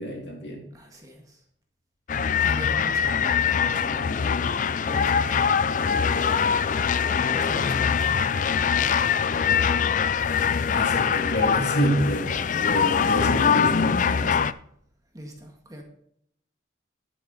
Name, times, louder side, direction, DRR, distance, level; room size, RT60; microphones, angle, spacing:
voice 1, 0.0-0.6 10.7-14.4, equal, 60° left, 1 dB, 3.0 m, -28 dB
voice 2, 0.7-1.4 2.4-9.0 12.6-12.9 15.1-15.8, equal, 20° right, 2 dB, 1.8 m, -40 dB
sound 1, 2.1-14.5, left 7 dB, 40° left, 0.4 m, -23 dB
11.0 x 9.2 x 4.1 m, 0.68 s
head